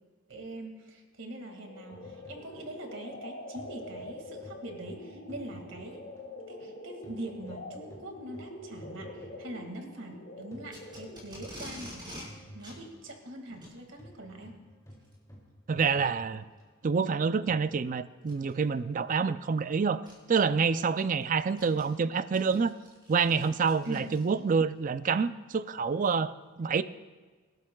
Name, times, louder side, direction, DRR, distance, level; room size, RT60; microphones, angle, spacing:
voice 1, 0.3-6.0 6.5-14.5 23.8-24.0, right 1 dB, 60° right, 3 dB, 2.1 m, -43 dB
sound 1, 1.5-11.4, left 1 dB, 50° left, 2.1 m, -45 dB
sound 2, 1.9-6.7 7.0-17.6, equal, 15° left, 2.5 m, -53 dB
Packing tape duct tape, 10.7-12.3 12.6-12.8 13.5-13.8 14.9-15.1 15.8-15.9 16.6-16.7 18.2-18.5 19.6-19.7 20.1-20.2 20.6-24.6, equal, 20° right, 5.1 m, -47 dB
voice 2, 15.7-16.4 16.8-20.0 20.3-22.7 23.1-26.8, right 5 dB, 40° right, 14 dB, 0.4 m, -27 dB
26.0 x 12.0 x 2.3 m, 1.4 s
head